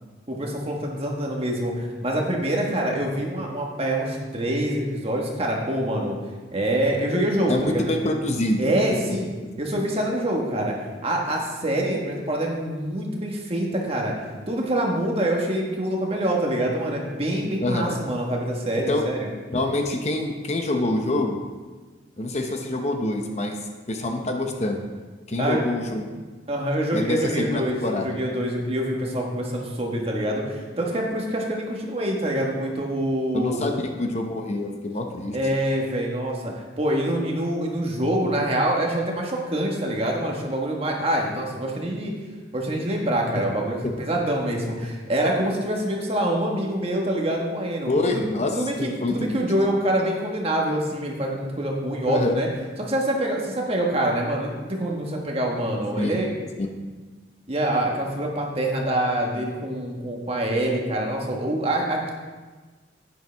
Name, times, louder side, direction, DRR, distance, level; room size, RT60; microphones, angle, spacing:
voice 1, 0.3-6.2 6.5-7.9 8.6-9.3 9.6-10.7 11.0-14.1 14.5-19.3 25.4-25.6 26.5-33.6 35.3-42.1 42.5-48.3 48.5-52.5 52.8-56.3 57.5-62.1, right 1 dB, 30° right, -1 dB, 1.5 m, -25 dB
voice 2, 7.5-9.2 17.6-17.9 18.9-19.0 19.5-21.4 22.2-23.6 23.9-24.8 25.3-26.1 26.9-28.1 33.3-35.4 43.8-43.9 47.9-48.5 48.8-49.5 52.1-52.4 56.0-56.2 56.6-56.7, left 2 dB, 35° left, 4 dB, 0.8 m, -26 dB
10.5 x 9.5 x 3.4 m, 1.3 s
head